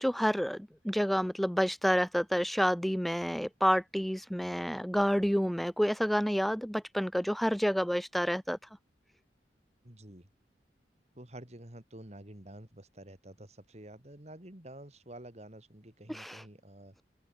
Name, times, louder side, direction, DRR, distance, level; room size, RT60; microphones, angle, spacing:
voice 1, 0.0-8.6 16.1-16.4, equal, ahead, 0.6 m, -29 dB
voice 2, 9.8-10.3 11.1-16.9, right 1 dB, 40° right, 2.9 m, -49 dB
open air
head